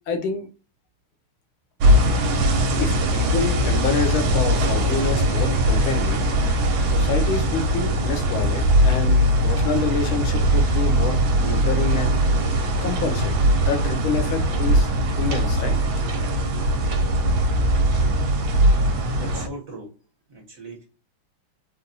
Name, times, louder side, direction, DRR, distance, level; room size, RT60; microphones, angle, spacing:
voice 1, 0.1-0.5 2.8-6.2 6.9-12.1 12.8-13.3 13.7-14.9 15.2-15.8, left 5 dB, 80° left, 5 dB, 1.6 m, -27 dB
sound 1, 1.8-19.5, right 1 dB, 75° right, 1.3 m, -20 dB
voice 2, 19.2-19.9 20.3-20.8, right 2 dB, 50° right, 0 dB, 1.1 m, -38 dB
4.1 x 2.2 x 2.6 m, 0.33 s
omnidirectional pair, 2.3 m